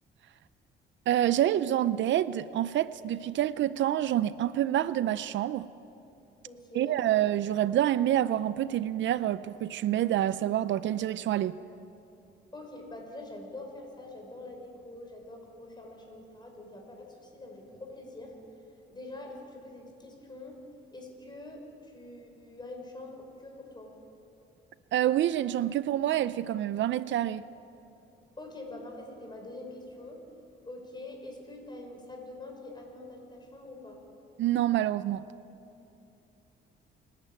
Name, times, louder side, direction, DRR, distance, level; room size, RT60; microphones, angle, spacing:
voice 1, 1.1-5.7 6.7-11.6 24.9-27.4 34.4-35.2, right 12 dB, 70° right, 0.5 m, -27 dB
voice 2, 6.4-7.0 12.5-18.3 18.9-20.6 20.9-23.9 28.4-30.2 30.6-34.0, left 2 dB, 20° left, 5.7 m, -45 dB
28.0 x 11.0 x 8.9 m
cardioid pair, 90°, 20 cm